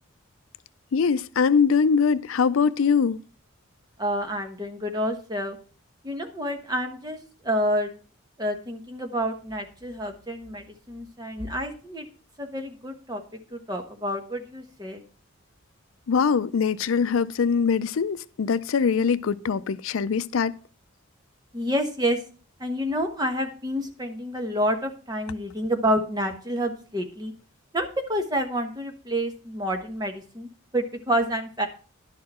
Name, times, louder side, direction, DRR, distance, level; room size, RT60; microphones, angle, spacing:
voice 1, 0.9-3.2 16.1-20.5, left 6 dB, 80° left, 0.4 m, -22 dB
voice 2, 4.0-5.6 6.0-7.2 7.4-7.9 8.4-12.1 12.4-13.2 13.5-15.0 21.5-22.2 22.6-27.3 27.7-31.7, equal, 20° right, 1.2 m, -28 dB
11.5 x 6.6 x 4.3 m
head